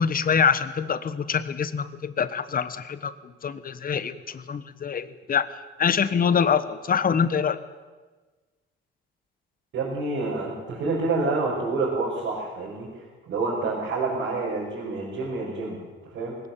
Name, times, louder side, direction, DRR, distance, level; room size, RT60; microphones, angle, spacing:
voice 1, 0.0-3.1 3.4-5.5 5.8-7.6, left 7 dB, 45° left, 14 dB, 1.3 m, -25 dB
voice 2, 9.7-12.9 13.3-15.8 16.1-16.3, right 3 dB, 75° right, -6 dB, 6.0 m, -28 dB
20.0 x 18.5 x 7.6 m, 1.3 s
cardioid pair, 90°, 20 cm